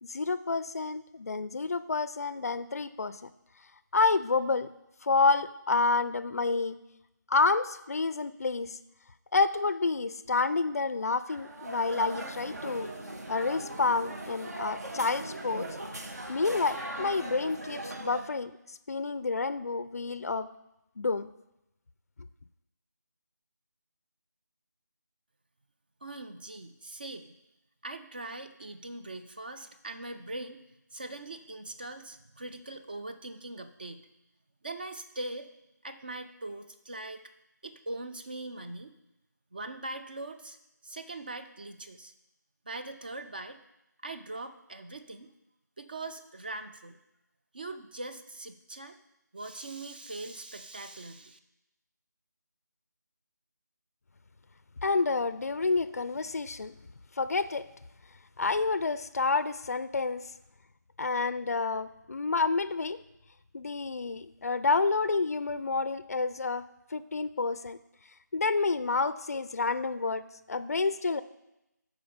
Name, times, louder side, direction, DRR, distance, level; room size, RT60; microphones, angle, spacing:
voice 1, 0.0-3.2 3.9-4.7 5.0-6.8 7.3-8.8 9.3-12.9 13.3-15.7 16.3-20.5 21.0-21.3 54.8-56.7 57.2-57.7 58.4-60.3 61.0-63.0 63.5-67.8 68.3-71.2, left 4 dB, 50° left, 14 dB, 0.4 m, -29 dB
sound 1, 11.2-18.2, right 1 dB, 55° right, 1.4 m, -39 dB
voice 2, 26.0-27.4 27.8-30.6 30.9-34.1 34.6-35.5 35.8-37.2 37.6-38.9 39.5-40.6 40.8-42.1 42.7-43.6 44.0-45.3 45.8-47.0 47.5-49.0 49.3-51.4, right 2 dB, 30° right, 8 dB, 0.5 m, -41 dB
13.0 x 4.8 x 5.1 m, 0.89 s
figure-of-eight pair, 170°, 10 cm